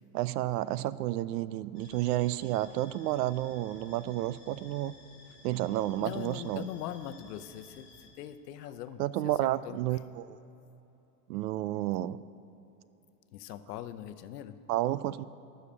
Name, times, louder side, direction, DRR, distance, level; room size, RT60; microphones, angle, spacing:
voice 1, 0.1-4.9 5.4-6.7 9.0-10.4 11.3-12.2 14.7-15.2, right 14 dB, 80° right, 17 dB, 0.5 m, -31 dB
sound 1, 1.7-8.1, left 3 dB, 25° left, 2.6 m, -56 dB
voice 2, 6.0-9.0 9.4-10.0 13.3-14.6, left 11 dB, 80° left, 12 dB, 0.8 m, -41 dB
12.0 x 6.6 x 8.6 m, 2.8 s
supercardioid pair, 180°, 47 cm